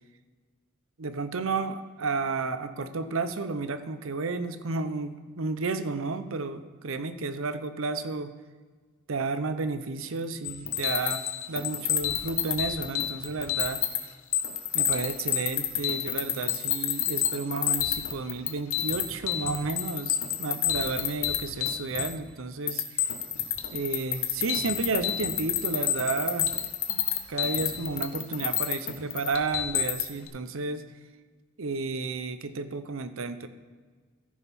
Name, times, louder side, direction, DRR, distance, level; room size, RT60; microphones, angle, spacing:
voice 1, 1.0-8.3 9.1-11.2 11.5-13.8 14.7-23.1 23.7-26.5 26.9-30.8 31.6-33.5, right 4 dB, 75° right, 11 dB, 0.6 m, -32 dB
sound 1, 10.4-14.0 14.3-22.3 22.7-30.3, left 11 dB, 85° left, 1.0 m, -29 dB
14.0 x 5.5 x 4.2 m, 1.5 s
head